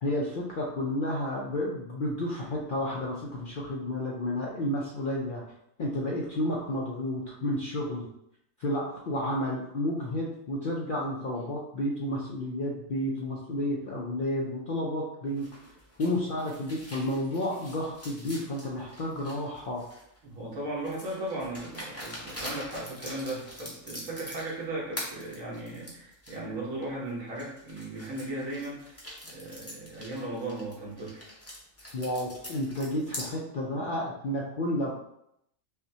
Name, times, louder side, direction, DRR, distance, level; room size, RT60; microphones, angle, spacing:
voice 1, 0.0-5.4 5.8-8.1 8.6-15.5 16.0-19.9 31.9-34.9, left 1 dB, 60° left, -3 dB, 0.5 m, -31 dB
sound 1, 15.4-20.2 20.8-24.6 24.9-26.4 26.8-26.9 27.4-33.3, equal, 15° left, 0.6 m, -43 dB
voice 2, 20.2-31.3, right 1 dB, 75° right, -4 dB, 1.5 m, -37 dB
5.6 x 2.2 x 2.7 m, 0.78 s
omnidirectional pair, 1.4 m